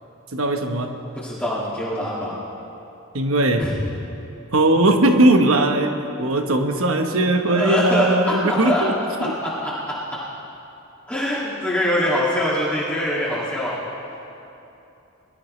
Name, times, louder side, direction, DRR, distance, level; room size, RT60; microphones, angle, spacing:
voice 1, 0.3-1.0 3.1-3.7 4.5-8.9 9.2-9.3, right 1 dB, 80° right, 5 dB, 1.1 m, -19 dB
voice 2, 1.2-2.3 3.6-3.7 7.5-8.1 8.4-8.8 9.4-9.7 11.1-13.8, left 1 dB, 5° left, -10 dB, 2.1 m, -23 dB
22.0 x 12.5 x 3.2 m, 2.8 s
head